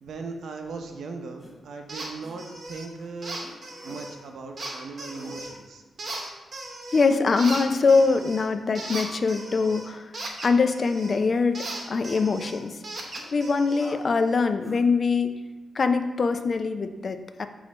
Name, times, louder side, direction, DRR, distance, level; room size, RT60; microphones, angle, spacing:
voice 1, 0.0-3.4 3.8-5.8, right 4 dB, 75° right, 4 dB, 0.7 m, -38 dB
sound 1, 1.4-1.6 2.2-2.4 3.4-4.0 4.6-4.8 5.1-5.4 7.5-8.0 11.0-12.3 12.7-12.8 13.1-13.3 13.8-14.1 14.6-14.8, left 1 dB, 15° left, 1.0 m, -47 dB
sound 2, 1.9-2.1 2.4-2.9 3.2-4.1 4.6-5.6 6.0-7.1 7.4-11.2 11.5-13.9, right 2 dB, 40° right, 0.9 m, -37 dB
voice 2, 6.9-10.1 10.4-12.8 13.3-15.3 15.7-17.5, left 4 dB, 40° left, 8 dB, 0.3 m, -23 dB
6.2 x 3.1 x 4.9 m, 1.2 s
wide cardioid pair, 145°, 0 cm